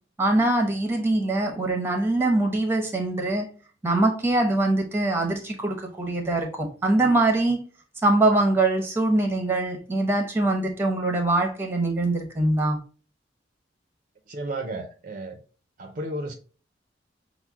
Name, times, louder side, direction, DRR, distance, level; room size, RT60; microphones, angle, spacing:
voice 1, 0.2-3.5 3.8-7.6 8.0-12.8, right 2 dB, 15° right, 0.8 m, -23 dB
voice 2, 14.3-15.4 15.8-16.3, right 1 dB, 45° right, 0.5 m, -33 dB
5.9 x 2.0 x 3.5 m
head